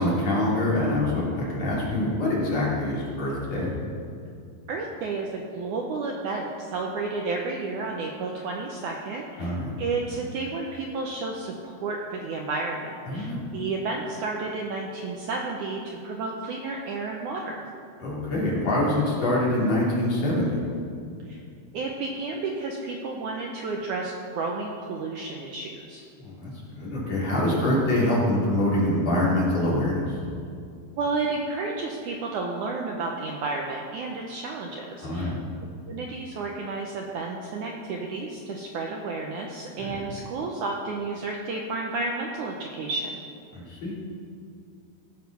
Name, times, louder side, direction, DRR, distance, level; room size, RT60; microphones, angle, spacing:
voice 1, 0.0-3.8 9.4-9.7 13.1-13.4 18.0-20.6 26.2-30.0 35.0-35.4 39.8-40.0 43.5-43.9, left 1 dB, 45° left, -6 dB, 3.7 m, -25 dB
voice 2, 4.7-17.6 21.3-21.4 21.7-26.0 31.0-35.3 35.9-43.2, right 3 dB, 70° right, 0 dB, 1.9 m, -31 dB
16.5 x 7.4 x 5.9 m, 2.4 s
omnidirectional pair, 4.4 m